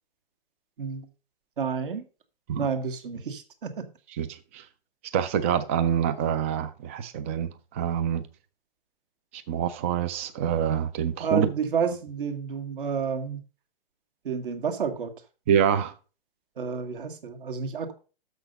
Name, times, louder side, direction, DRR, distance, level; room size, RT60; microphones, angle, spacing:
voice 1, 0.8-1.1 1.6-2.0 2.5-3.8 11.2-13.4 14.2-15.1 16.6-17.9, right 6 dB, 60° right, 1.6 m, -30 dB
voice 2, 4.2-4.6 5.1-8.2 9.3-11.5 11.8-11.9 15.5-15.9, right 8 dB, 15° right, 0.3 m, -26 dB
6.8 x 6.1 x 5.2 m
hypercardioid pair, 130°, 30 cm